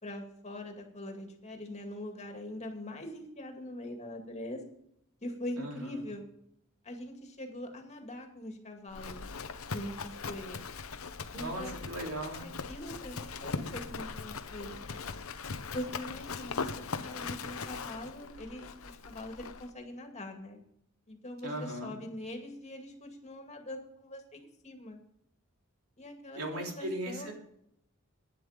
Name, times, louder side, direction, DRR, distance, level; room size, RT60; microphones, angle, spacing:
voice 1, 0.0-4.6 5.2-6.2 6.8-9.3 9.7-10.7 11.3-11.8 12.4-15.0 15.7-20.6 21.1-25.0 26.0-27.3, left 1 dB, 30° left, 3 dB, 2.2 m, -43 dB
voice 2, 5.6-6.0 11.3-12.5 21.4-22.0 26.4-27.3, right 1 dB, 90° right, 1 dB, 3.3 m, -38 dB
Livestock farm animals working animals, 8.9-19.7, left 4 dB, 80° left, 0.9 m, -40 dB
11.5 x 10.0 x 5.1 m, 0.73 s
head